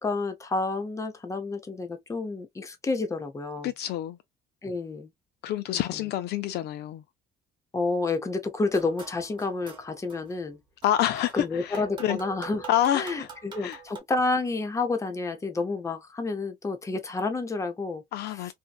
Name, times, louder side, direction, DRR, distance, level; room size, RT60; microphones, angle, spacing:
voice 1, 0.0-3.7 4.6-5.1 5.7-6.0 7.7-10.6 11.1-12.7 12.9-18.0 18.3-18.5, left 3 dB, 20° left, 0.7 m, -30 dB
voice 2, 3.6-4.2 5.4-7.0 10.8-12.2 12.7-13.3 13.6-13.8 18.1-18.5, left 12 dB, 75° left, 0.5 m, -27 dB
sound 1, 8.6-10.4 10.8-14.0, right 6 dB, 30° right, 1.2 m, -45 dB
2.7 x 2.2 x 2.3 m
cardioid pair, 110°, 17 cm